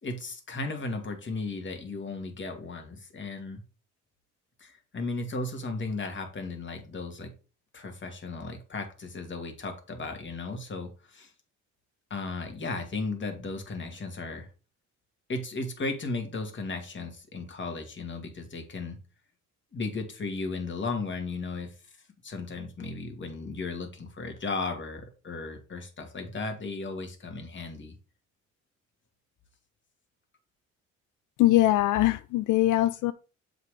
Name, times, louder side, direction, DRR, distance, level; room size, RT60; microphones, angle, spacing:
voice 1, 0.0-3.6 4.6-7.3 7.7-11.3 12.1-14.5 15.3-19.0 19.7-21.7 22.2-28.0, left 3 dB, 40° left, 2.1 m, -35 dB
voice 2, 31.4-33.1, left 15 dB, 85° left, 0.5 m, -22 dB
7.2 x 4.1 x 4.9 m
cardioid pair, 90°, 30 cm